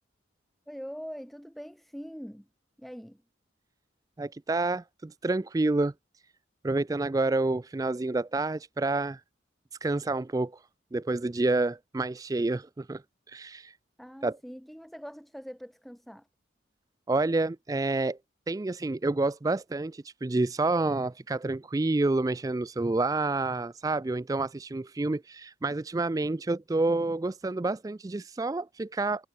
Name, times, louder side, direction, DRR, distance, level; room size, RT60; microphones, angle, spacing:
voice 1, 0.7-2.5 2.8-3.2 14.0-16.3, equal, ahead, 2.5 m, -43 dB
voice 2, 4.2-5.9 6.6-9.2 9.8-10.6 10.9-13.0 13.3-13.8 14.2-14.4 17.1-18.2 18.5-29.3, right 2 dB, 20° right, 0.3 m, -28 dB
head